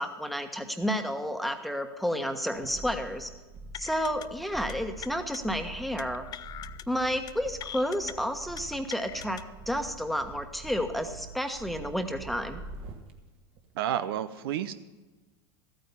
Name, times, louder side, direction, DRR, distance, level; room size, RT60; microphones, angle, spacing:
voice 1, 0.0-3.3 3.7-6.2 6.9-9.4 9.7-12.6, equal, ahead, 6 dB, 1.3 m, -31 dB
sound 1, 2.4-13.1 13.5-13.7, right 3 dB, 45° right, 1.8 m, -45 dB
sound 2, 3.7-4.3 4.5-4.7 5.0-5.4 6.0-6.8 7.1-7.3 7.6-8.1 8.6-9.4, left 11 dB, 30° left, 0.4 m, -42 dB
voice 2, 13.8-14.7, right 11 dB, 65° right, 12 dB, 0.6 m, -30 dB
14.0 x 9.2 x 5.6 m, 1.2 s
hypercardioid pair, 85°, 13 cm